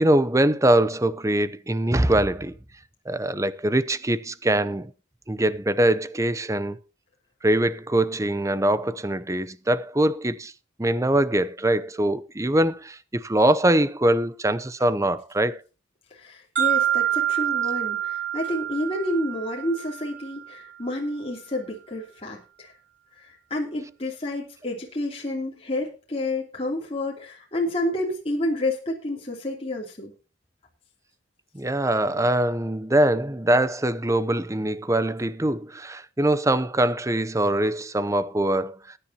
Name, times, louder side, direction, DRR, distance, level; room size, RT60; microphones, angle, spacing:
voice 1, 0.0-2.6 3.1-4.9 5.3-6.8 7.4-10.5 10.8-15.6 31.5-38.8, right 1 dB, 15° right, 0.7 m, -23 dB
voice 2, 16.1-22.7 23.1-30.1, left 1 dB, 30° left, 3.0 m, -29 dB
sound 1, 16.6-20.5, right 11 dB, 75° right, 5.2 m, -26 dB
20.5 x 10.0 x 2.9 m
head